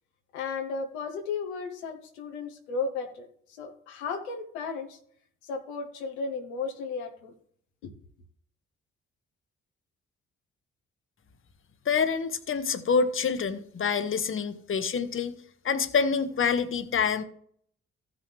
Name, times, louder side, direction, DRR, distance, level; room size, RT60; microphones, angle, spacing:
voice 1, 0.3-5.0 5.4-7.3 7.8-7.9, left 4 dB, 85° left, 5 dB, 1.0 m, -34 dB
voice 2, 11.9-15.4 15.6-17.2, left 6 dB, 40° left, 12 dB, 1.0 m, -26 dB
14.5 x 6.1 x 3.3 m, 0.62 s
hypercardioid pair, 40°, 32 cm